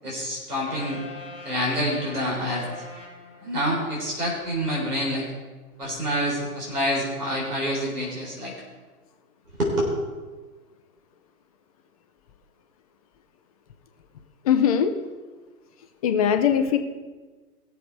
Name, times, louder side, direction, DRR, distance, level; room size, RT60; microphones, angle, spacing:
voice 1, 0.0-1.0 1.4-2.6 3.4-5.3 5.8-8.5 9.6-9.9, equal, 75° right, -4 dB, 4.1 m, -27 dB
sound 1, 0.7-3.9, left 2 dB, 15° right, 2.8 m, -42 dB
voice 2, 14.4-14.9 16.0-16.8, left 8 dB, 25° left, 7 dB, 0.7 m, -20 dB
17.5 x 7.1 x 4.7 m, 1.3 s
figure-of-eight pair, 120°, 45 cm